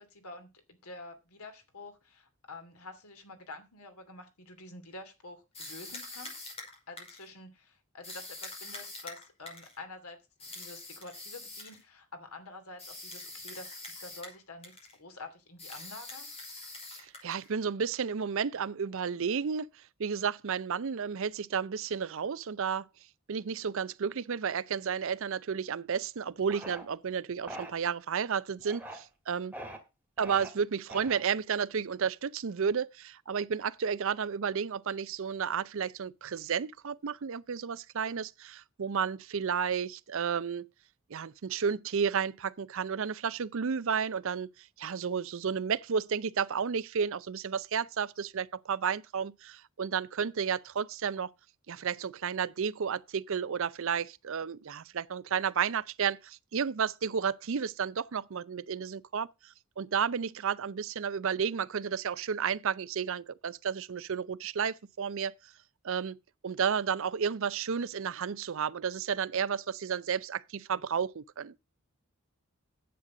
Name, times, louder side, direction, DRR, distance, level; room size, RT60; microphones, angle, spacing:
voice 1, 0.0-6.5 6.9-16.3, left 2 dB, 85° left, 2.8 m, -48 dB
sound 1, 5.5-7.3 8.0-9.8 10.4-11.8 12.8-14.4 14.6-15.0 15.6-17.5, left 2 dB, 30° left, 5.4 m, -44 dB
voice 2, 16.9-19.7 20.0-22.8 23.3-29.5 30.2-40.7 41.1-51.3 51.7-65.3 65.8-66.2 66.4-71.5, right 6 dB, 65° right, 0.5 m, -32 dB
sound 2, 26.5-26.8 27.5-27.7 28.6-29.0 29.5-29.8 30.2-30.5 30.9-31.4, right 1 dB, 10° right, 2.2 m, -43 dB
10.0 x 8.2 x 4.9 m
head